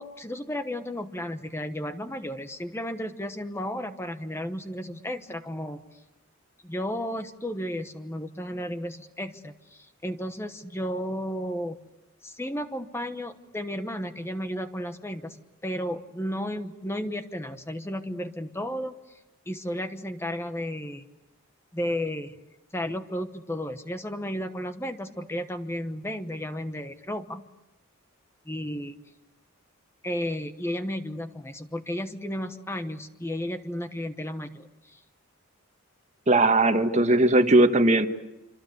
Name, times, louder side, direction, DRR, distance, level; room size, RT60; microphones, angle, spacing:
voice 1, 0.0-5.8 6.6-11.8 12.2-15.4 15.6-18.9 19.5-21.0 21.7-22.4 22.7-27.4 28.5-29.0 30.0-35.0, equal, 10° left, 8 dB, 1.1 m, -33 dB
voice 2, 36.3-38.1, right 2 dB, 35° right, 8 dB, 1.5 m, -19 dB
26.5 x 26.0 x 8.1 m, 0.94 s
head